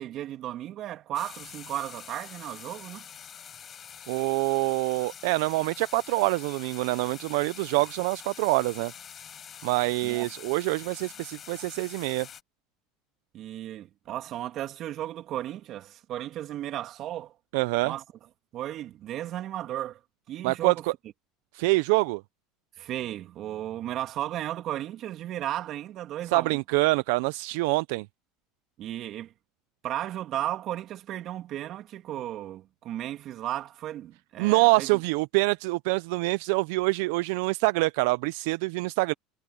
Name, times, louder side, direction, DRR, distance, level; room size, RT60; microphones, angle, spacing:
voice 1, 0.0-3.1 10.0-10.3 13.3-17.3 17.8-18.0 18.5-20.0 20.3-20.8 22.8-26.6 28.8-29.3 29.8-35.0, right 12 dB, 50° right, 2.9 m, -35 dB
sound 1, 1.1-12.4, left 8 dB, 35° left, 7.0 m, -45 dB
voice 2, 4.1-8.9 9.6-12.3 17.5-17.9 20.4-20.9 21.5-22.2 26.3-28.1 34.4-39.1, right 24 dB, 75° right, 0.5 m, -25 dB
supercardioid pair, 105°, 0 cm